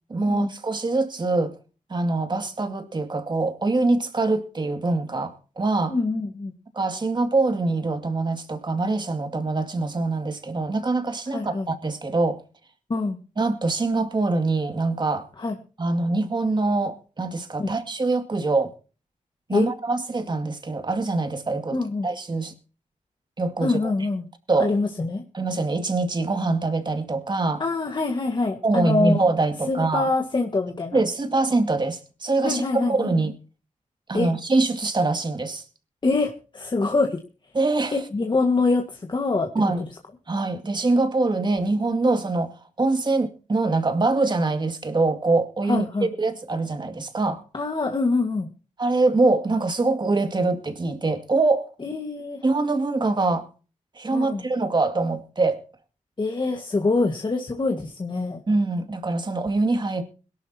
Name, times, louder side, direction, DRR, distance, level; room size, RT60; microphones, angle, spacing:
voice 1, 0.1-1.5 1.9-6.0 6.7-12.4 13.4-15.3 15.8-18.7 19.5-21.8 22.0-22.5 23.4-23.9 24.5-24.7 25.3-27.6 28.6-30.1 30.9-33.3 34.1-35.6 37.5-38.0 39.5-39.8 40.3-47.4 48.8-51.7 52.4-53.5 54.0-55.6 58.5-60.0, right 3 dB, 35° right, 2.2 m, -24 dB
voice 2, 5.9-6.5 11.3-11.7 12.9-13.2 15.4-15.6 17.6-17.7 19.5-19.7 21.7-22.1 23.6-24.2 24.6-25.2 27.6-29.2 29.7-31.0 32.4-33.1 34.1-34.3 36.0-37.2 37.9-39.5 45.7-46.1 47.5-48.5 51.8-52.4 54.1-54.4 56.2-58.4, left 3 dB, 35° left, 1.7 m, -24 dB
22.0 x 12.0 x 2.9 m
wide cardioid pair, 100°, 13 cm